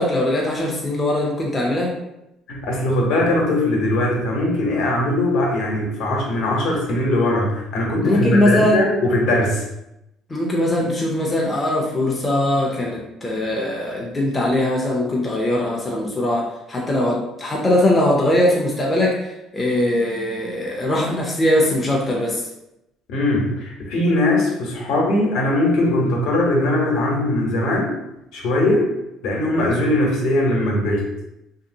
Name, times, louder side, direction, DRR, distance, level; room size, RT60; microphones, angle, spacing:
voice 1, 0.0-1.9 8.0-8.8 10.3-22.5, left 1 dB, 15° left, -3 dB, 0.4 m, -21 dB
voice 2, 2.5-9.6 23.1-28.0 28.3-28.9 29.2-31.1, left 1 dB, 65° left, -1 dB, 0.8 m, -20 dB
2.8 x 2.7 x 2.6 m, 0.87 s
cardioid pair, 170°, 0 cm